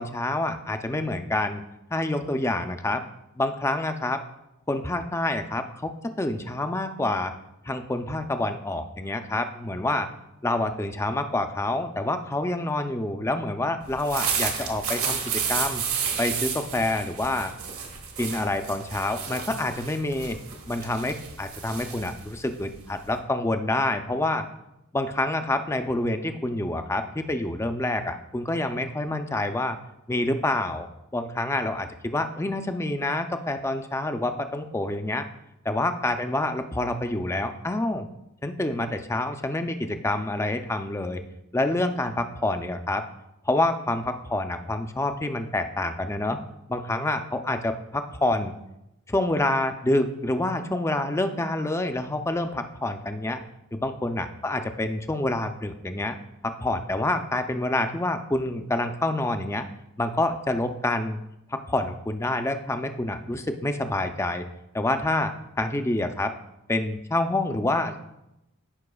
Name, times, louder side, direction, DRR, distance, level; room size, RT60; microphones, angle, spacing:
voice 1, 0.0-1.6 1.9-3.0 3.4-4.2 4.7-5.9 6.2-7.3 7.7-10.1 10.4-15.8 16.2-17.5 18.2-20.4 20.7-24.4 24.9-29.8 30.1-30.9 31.1-35.2 35.6-38.1 38.4-41.2 41.5-43.0 43.4-46.4 46.7-48.5 49.1-53.4 53.7-56.2 56.4-59.6 60.0-61.2 61.5-64.4 64.7-66.3 66.7-68.0, left 2 dB, 10° left, 7 dB, 0.4 m, -27 dB
sound 1, 13.9-23.2, right 6 dB, 65° right, 1.3 m, -31 dB
14.5 x 5.7 x 2.3 m, 0.87 s
head